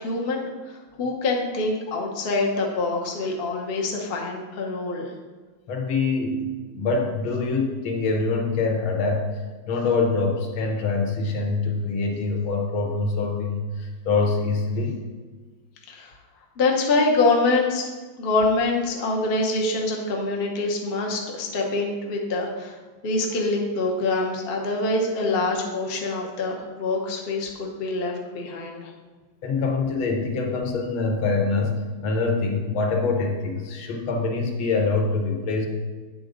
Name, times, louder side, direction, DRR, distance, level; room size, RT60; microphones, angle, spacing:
voice 1, 0.0-5.1 15.9-16.1 16.6-17.9 18.2-22.8 23.0-28.9, left 3 dB, 45° left, -1 dB, 0.8 m, -25 dB
voice 2, 5.7-9.3 9.7-15.0 29.4-35.7, left 3 dB, 80° left, 1 dB, 1.8 m, -25 dB
8.5 x 3.8 x 5.0 m, 1.4 s
omnidirectional pair, 2.2 m